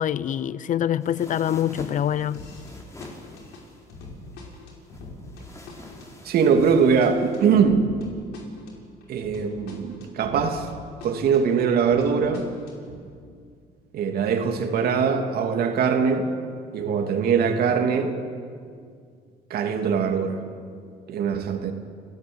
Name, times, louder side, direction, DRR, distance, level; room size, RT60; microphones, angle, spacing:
voice 1, 0.0-2.4, left 10 dB, 50° left, 18 dB, 0.7 m, -25 dB
sound 1, 1.0-7.6, left 2 dB, 15° left, 4.5 m, -45 dB
sound 2, 2.3-2.7 3.0-10.7 11.0-13.0, left 3 dB, 80° left, 5.2 m, -43 dB
voice 2, 6.2-7.9 9.1-10.7 11.0-12.5 13.9-16.3 16.7-18.2 19.5-20.4 21.1-21.7, right 6 dB, 65° right, 5 dB, 2.8 m, -22 dB
29.5 x 16.5 x 8.0 m, 2.2 s
cardioid pair, 110°, 17 cm